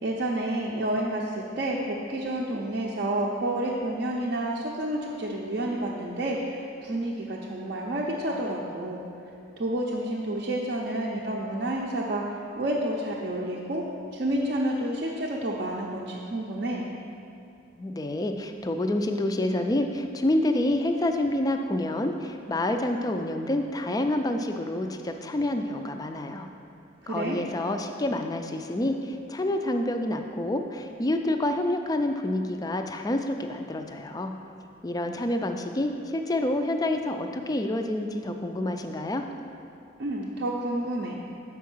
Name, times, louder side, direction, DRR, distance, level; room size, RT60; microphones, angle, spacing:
voice 1, 0.0-9.0 9.6-13.8 14.1-16.9 27.0-27.4 40.0-41.2, right 1 dB, 50° right, -3 dB, 0.5 m, -29 dB
voice 2, 17.8-26.5 27.1-34.3 34.8-39.2, left 1 dB, 20° left, 5 dB, 0.3 m, -28 dB
6.3 x 4.7 x 6.0 m, 2.6 s
head